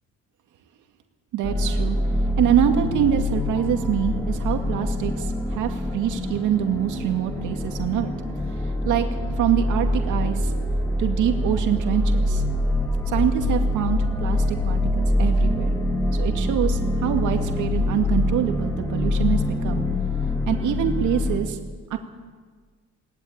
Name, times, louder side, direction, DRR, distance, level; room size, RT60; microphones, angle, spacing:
voice 1, 1.3-2.0 2.4-8.1 8.8-9.1 9.4-10.5 11.0-12.4 13.1-15.8 16.1-19.8 20.5-21.6 21.9-22.0, right 10 dB, 90° right, 5 dB, 2.3 m, -25 dB
sound 1, 1.4-21.4, left 1 dB, 10° left, 5.2 m, -24 dB
20.0 x 18.5 x 8.8 m, 1.5 s
cardioid pair, 90°, 30 cm